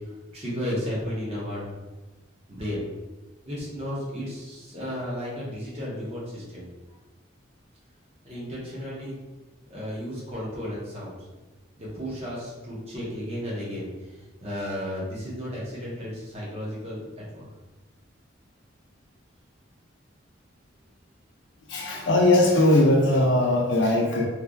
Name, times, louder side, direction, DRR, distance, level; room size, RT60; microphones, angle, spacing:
voice 1, 0.1-1.9 2.5-2.9 3.4-6.7 8.2-9.2 9.7-11.2 11.8-17.0 17.3-17.5, equal, 30° right, -6 dB, 1.0 m, -33 dB
voice 2, 21.7-24.3, left 1 dB, 60° left, 0 dB, 0.6 m, -20 dB
3.2 x 2.9 x 2.5 m, 1.1 s
head